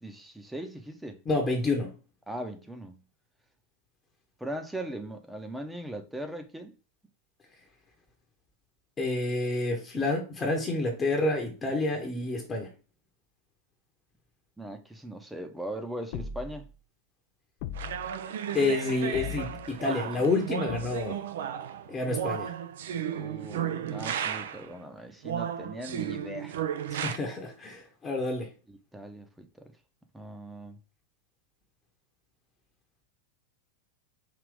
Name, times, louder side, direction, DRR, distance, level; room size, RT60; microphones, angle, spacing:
voice 1, 0.0-1.2 2.3-3.0 4.4-6.8 14.6-16.7 23.1-26.6 28.7-29.7 30.1-30.8, right 1 dB, 5° right, 0.8 m, -39 dB
voice 2, 1.3-1.9 9.0-12.7 18.5-21.2 21.9-22.5 26.9-28.5, left 2 dB, 20° left, 0.9 m, -29 dB
sound 1, 16.1-16.7 17.6-18.2 19.1-19.8 20.7-21.3, left 8 dB, 45° left, 0.4 m, -38 dB
sound 2, 17.8-24.7 25.2-27.2, right 9 dB, 60° right, 0.4 m, -34 dB
5.0 x 2.9 x 3.4 m
figure-of-eight pair, 90°, 0 cm